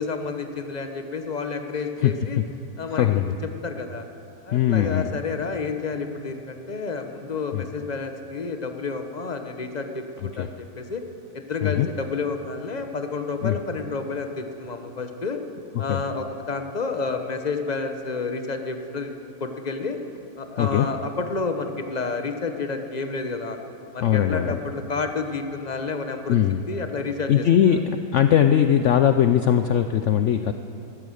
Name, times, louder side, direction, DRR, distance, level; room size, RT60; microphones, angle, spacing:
voice 1, 0.0-2.4 2.8-3.1 3.4-4.0 4.4-11.0 11.3-15.4 15.8-20.0 20.4-23.6 23.9-26.4 26.7-27.8, left 4 dB, 35° left, 6 dB, 0.8 m, -30 dB
voice 2, 2.9-3.3 4.5-5.1 7.5-7.6 10.4-10.5 11.6-11.9 13.4-13.6 15.8-16.0 20.6-20.9 24.0-24.6 26.3-26.6 27.3-27.9 28.1-30.5, left 10 dB, 70° left, 9 dB, 0.7 m, -20 dB
15.5 x 14.0 x 6.5 m, 3.0 s
omnidirectional pair, 1.8 m